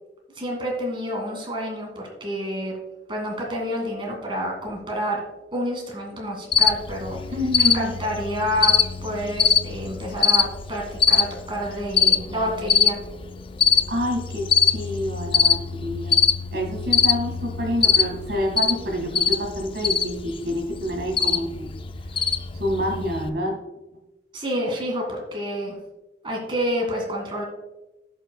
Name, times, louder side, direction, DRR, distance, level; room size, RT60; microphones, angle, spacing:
voice 1, 0.3-2.7 3.1-5.2 5.5-7.2 7.6-8.7 9.0-13.0 24.3-25.8 26.2-27.4, equal, 30° right, 0 dB, 1.9 m, -28 dB
Cricket, 6.5-23.3, left 7 dB, 30° left, 0.4 m, -23 dB
voice 2, 7.3-8.0 13.9-16.2 16.5-21.7 22.1-22.2 22.5-23.6, equal, 70° right, 1 dB, 1.8 m, -28 dB
16.0 x 5.4 x 2.2 m, 1.0 s
head